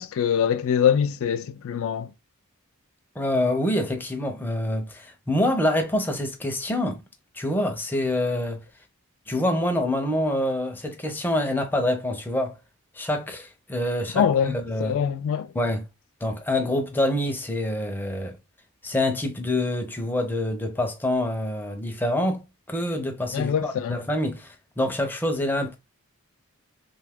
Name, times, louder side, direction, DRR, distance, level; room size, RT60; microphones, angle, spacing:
voice 1, 0.0-2.1 14.1-15.5 23.3-24.0, left 8 dB, 65° left, 0.3 m, -24 dB
voice 2, 3.2-7.0 7.4-8.6 9.3-12.5 13.0-15.0 15.5-15.9 16.2-18.4 18.8-25.8, left 1 dB, 10° left, 0.5 m, -26 dB
2.7 x 2.3 x 3.4 m
head